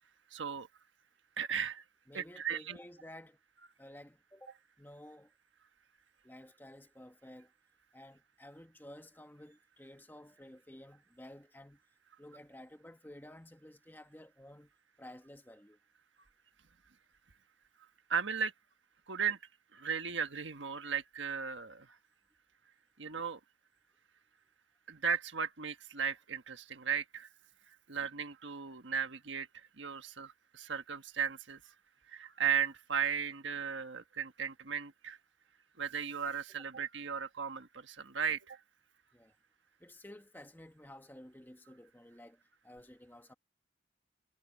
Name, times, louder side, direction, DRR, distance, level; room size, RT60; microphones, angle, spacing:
voice 1, 0.3-0.7 1.4-1.8 2.1-2.8 18.1-18.5 19.1-19.4 19.7-22.0 23.0-23.4 24.9-27.3 27.9-31.6 32.1-35.2 35.8-38.6, right 7 dB, 85° right, 1.4 m, -36 dB
voice 2, 2.1-3.4 3.8-5.3 6.2-7.5 7.9-11.8 12.2-14.7 15.0-15.8 39.1-39.3 39.8-43.3, left 1 dB, 10° left, 1.2 m, -53 dB
head